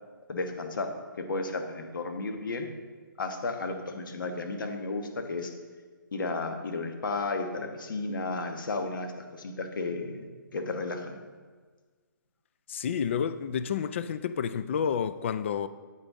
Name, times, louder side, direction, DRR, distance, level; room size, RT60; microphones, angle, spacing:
voice 1, 0.3-0.9 1.2-2.7 3.2-5.5 6.1-11.2, left 3 dB, 70° left, 1.3 m, -33 dB
voice 2, 12.7-15.7, left 7 dB, 35° left, 0.3 m, -30 dB
8.9 x 8.4 x 3.7 m
hypercardioid pair, 155°, 11 cm